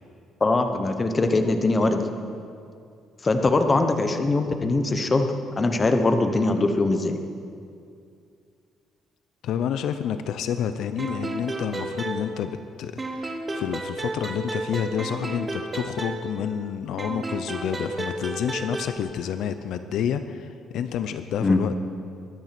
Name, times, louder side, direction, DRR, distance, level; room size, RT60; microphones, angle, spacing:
voice 1, 0.4-2.1 3.2-7.2 21.4-21.6, left 2 dB, 20° left, 6 dB, 1.0 m, -22 dB
voice 2, 9.4-21.8, left 8 dB, 65° left, 10 dB, 0.6 m, -29 dB
sound 1, 11.0-12.7 13.0-16.6 17.0-19.0, right 2 dB, 15° right, 1.2 m, -32 dB
22.5 x 10.0 x 6.0 m, 2.4 s
cardioid pair, 165°, 0 cm